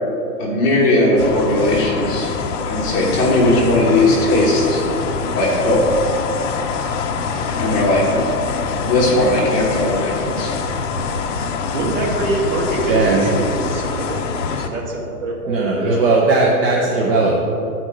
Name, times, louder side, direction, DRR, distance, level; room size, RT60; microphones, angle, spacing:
voice 1, 0.4-2.3 2.7-4.8 5.3-5.8 7.6-8.0 8.8-10.5, left 1 dB, 25° left, -4 dB, 1.3 m, -17 dB
sound 1, 1.2-14.7, left 5 dB, 50° left, 0.7 m, -25 dB
voice 2, 11.7-14.2 14.6-15.9, right 2 dB, 50° right, -2 dB, 2.0 m, -24 dB
voice 3, 12.9-13.3 15.5-17.4, right 3 dB, 35° right, -3 dB, 0.9 m, -17 dB
11.0 x 4.4 x 5.1 m, 2.8 s
hypercardioid pair, 155°, 47 cm